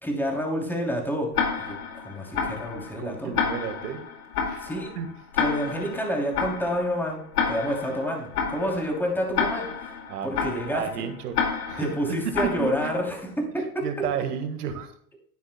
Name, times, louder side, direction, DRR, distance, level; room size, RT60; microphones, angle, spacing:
voice 1, 0.0-1.3 1.6-3.3 4.6-4.9 5.4-7.2 7.5-9.9 10.2-11.1 11.8-13.8, equal, 5° left, 0 dB, 2.9 m, -29 dB
Tick-tock, 1.3-13.2, left 6 dB, 70° left, 2.3 m, -30 dB
voice 2, 3.0-4.0 4.5-4.7 5.0-5.1 10.1-11.9 12.3-12.9 13.8-14.9, right 7 dB, 75° right, 8 dB, 1.7 m, -32 dB
12.5 x 9.5 x 2.2 m, 0.64 s
hypercardioid pair, 90°, 47 cm